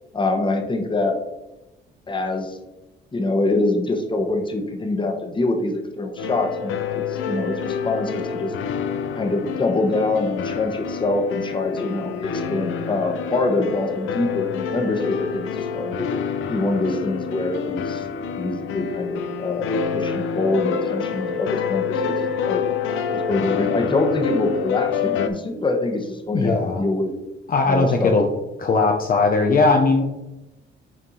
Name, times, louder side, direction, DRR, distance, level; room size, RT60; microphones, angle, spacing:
voice 1, 0.1-1.2 2.1-2.6 3.1-8.5 9.2-16.1 16.5-18.1 18.4-22.7 23.1-27.1 27.7-28.1, left 2 dB, 25° left, 4 dB, 1.2 m, -25 dB
sound 1, 6.2-25.3, left 6 dB, 85° left, 0.6 m, -27 dB
voice 2, 26.3-26.8 27.5-28.3 28.6-30.0, left 3 dB, 45° left, 2 dB, 0.8 m, -19 dB
6.1 x 4.4 x 4.1 m, 0.97 s
cardioid pair, 90°, 20 cm